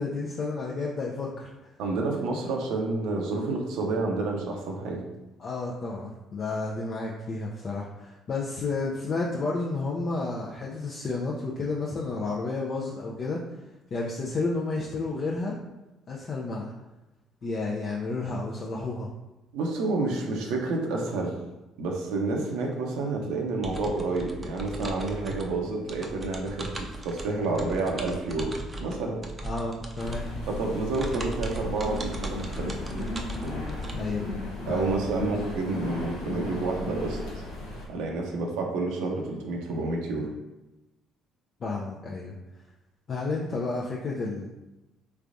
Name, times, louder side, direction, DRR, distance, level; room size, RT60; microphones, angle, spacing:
voice 1, 0.0-1.5 5.4-13.4 13.9-15.5 16.1-16.7 17.4-19.1 29.4-30.3 33.9-34.3 34.7-34.9 41.6-42.4 43.1-44.5, left 3 dB, 50° left, -3 dB, 0.5 m, -31 dB
voice 2, 1.8-5.0 19.5-21.4 21.8-29.2 30.5-32.8 34.7-37.4 37.9-40.3, right 3 dB, 80° right, 1 dB, 0.6 m, -29 dB
sound 1, 23.6-33.9, right 2 dB, 30° right, 0.5 m, -39 dB
sound 2, 30.0-37.8, left 2 dB, 85° left, 0.7 m, -35 dB
3.4 x 3.3 x 2.5 m, 1.0 s
supercardioid pair, 65°, 0 cm